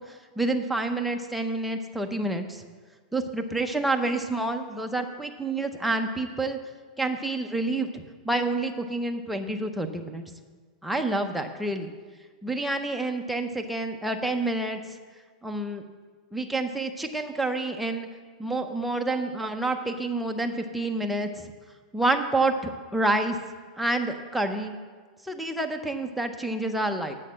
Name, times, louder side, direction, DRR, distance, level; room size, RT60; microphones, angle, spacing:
voice 1, 0.0-2.6 3.1-6.6 7.0-10.2 10.8-11.9 12.4-14.8 15.4-15.8 16.3-18.1 18.4-21.5 21.9-23.4 23.8-24.8 25.2-27.1, right 2 dB, ahead, 3 dB, 0.6 m, -28 dB
7.9 x 6.5 x 7.4 m, 1.5 s
supercardioid pair, 155°, 4 cm